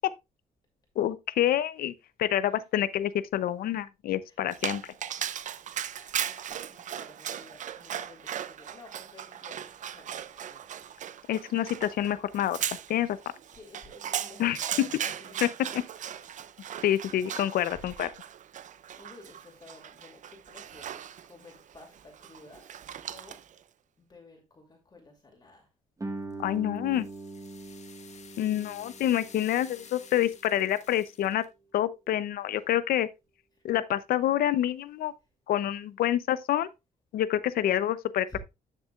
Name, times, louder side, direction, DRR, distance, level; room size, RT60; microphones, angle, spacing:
voice 1, 1.0-1.9 2.2-4.8 11.3-13.2 14.4-14.9 15.4-15.8 16.8-18.1 26.4-27.1 28.4-31.4 31.7-33.1 33.6-35.1 35.5-36.7 37.1-38.4, left 12 dB, 80° left, 0.6 m, -27 dB
Dog, 4.5-23.6, right 9 dB, 55° right, 0.5 m, -38 dB
voice 2, 5.9-10.9 13.5-15.8 16.8-17.2 18.6-22.7 23.1-23.4 24.0-25.7 38.2-38.4, left 2 dB, 25° left, 2.6 m, -52 dB
Guitar, 26.0-31.4, right 2 dB, 20° right, 1.5 m, -43 dB
sound 1, 26.3-31.5, left 6 dB, 50° left, 1.3 m, -52 dB
9.9 x 6.7 x 2.4 m
cardioid pair, 110°, 15 cm